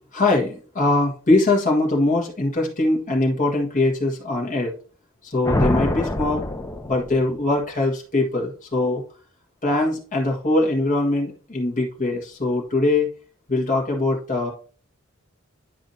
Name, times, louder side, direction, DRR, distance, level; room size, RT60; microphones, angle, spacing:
voice 1, 0.1-4.7 5.2-6.4 6.9-9.0 9.6-13.1 13.5-14.5, left 2 dB, 40° left, 0 dB, 1.7 m, -22 dB
sound 1, 5.4-7.4, left 1 dB, 15° left, 0.7 m, -25 dB
10.0 x 5.0 x 2.7 m, 0.40 s
head